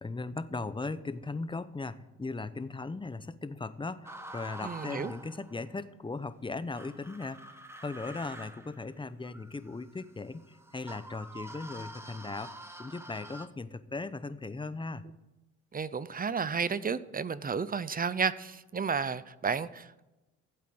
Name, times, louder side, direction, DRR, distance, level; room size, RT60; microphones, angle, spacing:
voice 1, 0.0-7.4 7.8-12.5 12.8-15.0, left 3 dB, 15° left, 13 dB, 0.9 m, -38 dB
sound 1, 4.1-5.7 6.7-13.5, right 1 dB, 10° right, 1.5 m, -47 dB
voice 2, 4.6-5.1 15.7-20.0, right 5 dB, 25° right, 17 dB, 0.7 m, -32 dB
15.5 x 8.3 x 7.8 m, 1.0 s
cardioid pair, 85°, 32 cm